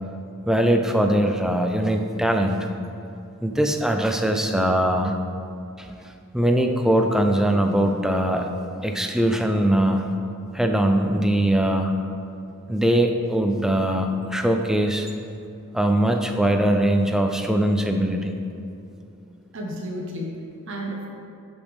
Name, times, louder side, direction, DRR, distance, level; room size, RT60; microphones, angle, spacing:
voice 1, 0.5-2.6 3.4-5.2 5.8-5.9 6.3-8.5 8.8-10.0 10.5-11.9 12.7-15.1 15.7-18.3, right 1 dB, ahead, 4 dB, 0.4 m, -21 dB
voice 2, 19.5-21.1, equal, 60° right, -1 dB, 0.9 m, -32 dB
11.0 x 5.2 x 3.5 m, 2.6 s
head